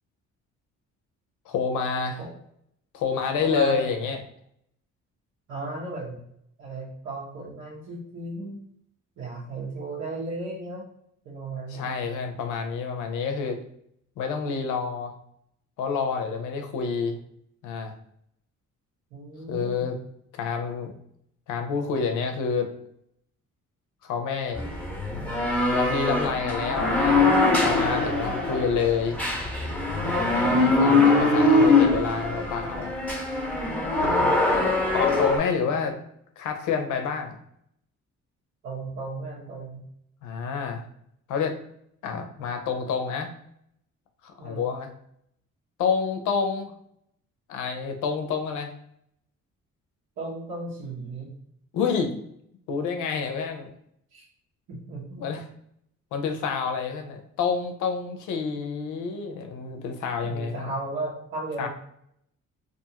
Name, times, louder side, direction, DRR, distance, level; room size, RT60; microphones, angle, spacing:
voice 1, 1.5-2.2 2.9-4.2 11.7-13.6 14.2-15.1 15.8-17.2 17.6-17.9 19.5-20.0 20.3-20.9 21.5-22.7 24.0-24.6 25.7-27.3 27.6-29.2 30.0-32.9 34.0-34.5 34.9-36.0 36.4-37.4 40.2-40.8 41.3-41.6 42.0-43.3 44.2-44.9 45.8-46.7 47.5-48.7 51.7-52.1 52.7-53.7 55.2-55.4 56.1-60.7 61.6-61.7, left 5 dB, 85° left, 5 dB, 0.6 m, -28 dB
voice 2, 3.4-3.8 5.5-6.2 6.6-8.6 9.2-10.8 11.2-11.9 19.1-19.9 38.6-39.8 44.4-44.6 50.2-51.3 54.1-54.3 54.7-55.2 60.2-61.7, right 2 dB, 75° right, -8 dB, 1.0 m, -35 dB
sound 1, 24.6-35.4, left 2 dB, 5° left, 0.8 m, -22 dB
2.6 x 2.4 x 2.8 m, 0.72 s
cardioid pair, 90°, 30 cm